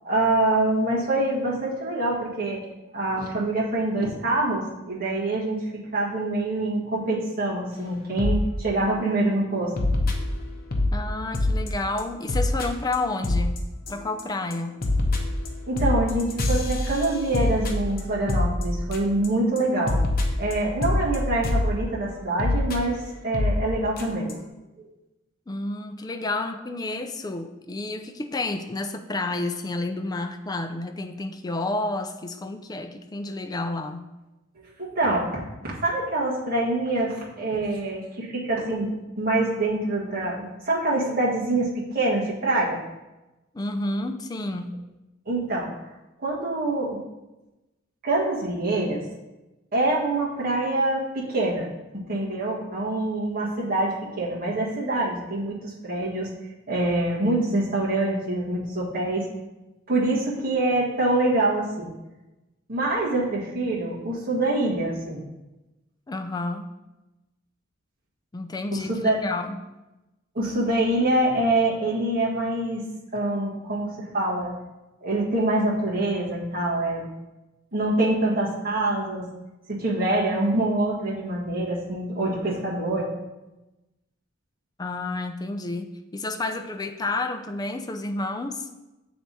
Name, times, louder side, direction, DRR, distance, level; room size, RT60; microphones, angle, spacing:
voice 1, 0.0-2.6 2.9-9.7 10.0-10.1 15.7-20.0 20.4-24.3 34.8-38.9 39.2-42.8 45.2-45.7 46.2-47.0 48.0-49.0 49.7-51.7 52.1-56.3 56.7-59.3 59.9-61.9 62.7-65.2 68.7-69.2 70.3-72.8 73.1-74.5 75.0-77.0 77.7-79.2 79.7-83.1, right 2 dB, 45° right, -5 dB, 1.6 m, -25 dB
sound 1, 8.2-8.4 8.8-9.1 9.8-10.9 11.3-11.7 12.0-12.1 12.3-12.7 12.9-13.0 13.2-13.6 13.9-14.2 14.5-19.3 19.6-19.7 19.9-21.7 22.4-22.8 23.3-23.6 24.0-24.1 24.3-24.4, left 2 dB, 50° left, 0.8 m, -24 dB
voice 2, 10.9-13.6 13.9-14.8 25.5-34.1 43.5-44.8 66.1-66.7 68.3-69.6 71.3-71.4 84.8-88.7, left 2 dB, 20° left, 6 dB, 0.4 m, -30 dB
7.6 x 3.4 x 4.1 m, 1.0 s
head